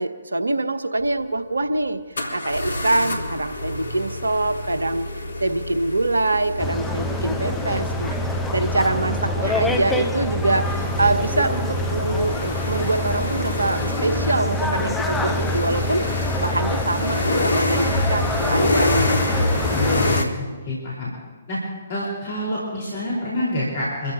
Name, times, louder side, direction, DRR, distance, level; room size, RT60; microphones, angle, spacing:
voice 1, 0.0-8.2 8.5-16.1 16.4-19.7, right 2 dB, 80° right, 10 dB, 1.0 m, -24 dB
sound 1, 1.0-1.1 2.2-20.3, left 1 dB, 70° left, 2.2 m, -27 dB
sound 2, 6.6-20.2, left 1 dB, 5° left, 0.9 m, -26 dB
voice 2, 19.5-20.3 20.7-21.1 21.5-21.6 21.9-24.1, left 1 dB, 50° left, -5 dB, 4.9 m, -27 dB
26.0 x 14.5 x 3.0 m, 1.4 s
figure-of-eight pair, 130°, 0 cm